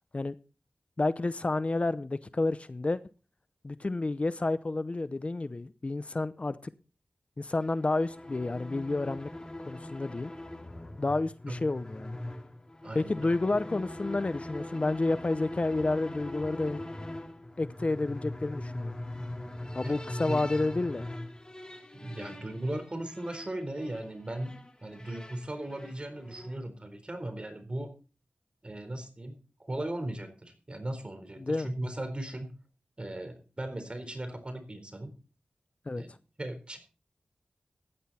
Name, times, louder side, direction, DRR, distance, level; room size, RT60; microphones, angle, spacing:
voice 1, 1.0-3.0 3.6-6.7 7.4-9.3 9.7-10.3 11.0-12.2 12.9-16.8 17.6-19.0 19.7-21.1 31.4-31.7 35.9-36.0, left 2 dB, 40° left, 0.7 m, -30 dB
sound 1, 7.6-26.7, left 1 dB, 25° left, 2.6 m, -42 dB
voice 2, 12.8-13.4 19.8-19.9 20.3-20.4 21.9-24.5 24.8-27.9 28.6-32.5 33.0-35.1 36.0-36.1 36.4-36.8, right 1 dB, 35° right, 4.1 m, -37 dB
15.5 x 11.0 x 4.2 m
wide cardioid pair, 65°, 3 cm